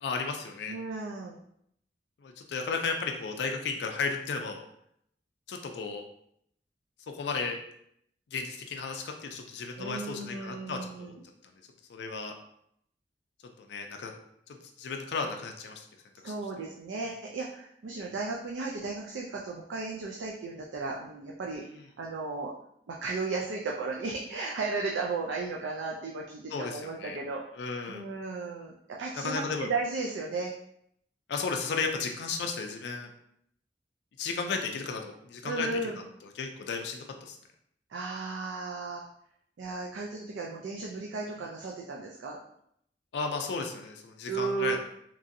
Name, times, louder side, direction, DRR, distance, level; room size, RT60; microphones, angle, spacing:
voice 1, 0.0-0.8 2.2-4.6 5.5-6.0 7.1-7.6 8.3-11.1 11.9-12.3 13.6-14.1 14.5-15.9 16.2-16.3 26.5-27.2 27.6-28.1 29.2-29.7 31.3-33.1 34.2-35.7 36.4-37.4 43.1-44.8, left 4 dB, 65° left, 3 dB, 0.3 m, -34 dB
voice 2, 0.7-1.4 9.8-11.2 16.2-21.6 22.0-22.5 22.9-27.4 27.9-30.5 35.4-36.0 37.9-39.1 39.6-42.4 44.3-44.8, right 3 dB, 90° right, -1 dB, 0.4 m, -35 dB
2.9 x 2.6 x 2.5 m, 0.72 s
head